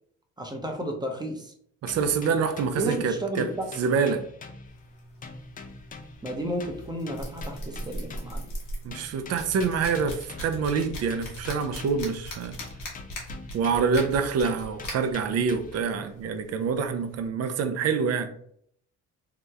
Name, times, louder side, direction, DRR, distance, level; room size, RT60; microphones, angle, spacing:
voice 1, 0.4-1.5 2.7-3.7 6.2-8.5, right 1 dB, 15° right, 0.6 m, -32 dB
voice 2, 1.8-3.5 3.8-4.2 8.8-12.6 13.5-18.3, right 5 dB, 55° right, 0.5 m, -26 dB
sound 1, 1.9-5.0 5.2-8.5 8.9-12.2 12.6-15.9, left 4 dB, 30° left, 0.4 m, -45 dB
sound 2, 4.7-17.3, equal, 80° left, 1.2 m, -40 dB
2.9 x 2.0 x 3.5 m
cardioid pair, 90°, 30 cm